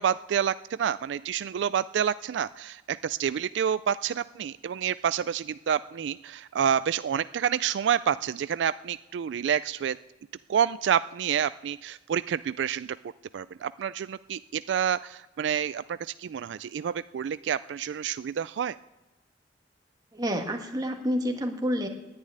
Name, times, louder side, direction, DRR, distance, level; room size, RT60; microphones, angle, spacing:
voice 1, 0.0-10.0 10.5-13.0 13.3-18.8, right 8 dB, 80° right, 15 dB, 0.3 m, -28 dB
voice 2, 20.1-21.9, equal, 20° right, 3 dB, 1.6 m, -28 dB
10.5 x 8.7 x 9.5 m, 1.1 s
head